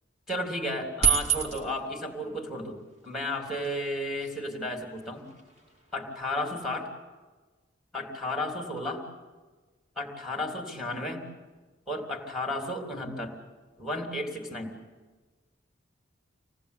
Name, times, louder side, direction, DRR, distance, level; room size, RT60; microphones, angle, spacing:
voice 1, 0.3-5.2 5.9-6.9 7.9-9.0 9.9-11.2 11.9-13.3 13.8-14.8, left 1 dB, ahead, 2 dB, 3.3 m, -33 dB
sound 1, 1.0-1.8 3.2-3.3 3.5-6.8, right 7 dB, 35° right, 2.4 m, -31 dB
26.0 x 19.0 x 8.4 m, 1.3 s
head